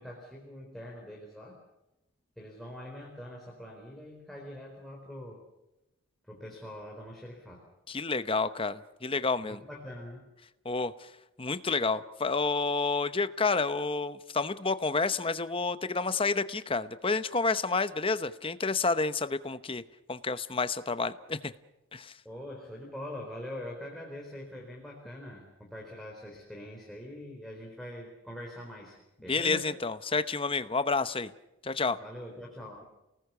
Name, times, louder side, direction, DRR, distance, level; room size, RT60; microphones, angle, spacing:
voice 1, 0.0-1.6 2.4-5.4 6.2-7.6 9.4-10.3 22.2-29.7 32.0-32.8, left 1 dB, ahead, -2 dB, 4.0 m, -43 dB
voice 2, 7.9-9.6 10.6-11.1 11.4-19.8 20.1-21.5 21.9-22.1 29.3-31.3 31.6-32.0, left 4 dB, 25° left, 12 dB, 0.9 m, -29 dB
30.0 x 19.5 x 6.9 m, 0.97 s
head